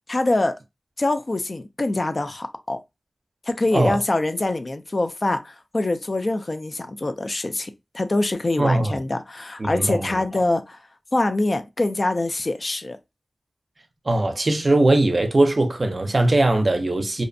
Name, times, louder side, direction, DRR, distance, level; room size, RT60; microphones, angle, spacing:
voice 1, 0.1-0.6 1.0-2.8 3.5-10.8 11.1-13.0, left 2 dB, 50° left, 0.3 m, -24 dB
voice 2, 8.6-9.0 9.6-10.2 14.1-17.2, right 2 dB, 50° right, 0.5 m, -20 dB
2.5 x 2.1 x 2.5 m
wide cardioid pair, 55°, 0 cm